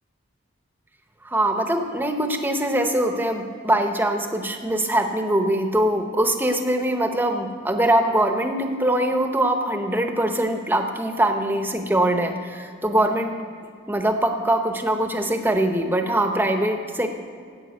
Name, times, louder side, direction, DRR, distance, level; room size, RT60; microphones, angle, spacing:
voice 1, 1.2-13.4 13.9-17.1, right 1 dB, 10° right, 5 dB, 0.8 m, -22 dB
11.5 x 8.7 x 7.9 m, 2.1 s
head